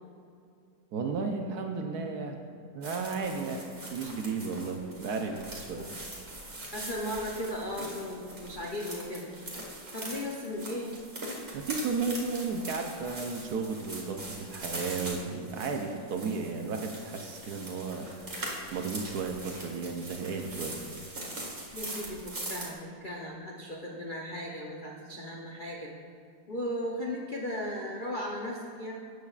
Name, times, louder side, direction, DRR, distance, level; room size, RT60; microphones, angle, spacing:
voice 1, 0.9-2.4 2.7-5.9 11.5-18.1 18.7-20.8, right 4 dB, 65° right, 4 dB, 1.0 m, -34 dB
sound 1, 2.8-22.7, right 1 dB, 35° right, 2.1 m, -42 dB
voice 2, 6.7-9.3 9.9-10.9 21.7-25.9 26.5-28.9, left 1 dB, 65° left, -2 dB, 0.5 m, -36 dB
13.0 x 8.0 x 2.4 m, 2.4 s
omnidirectional pair, 2.0 m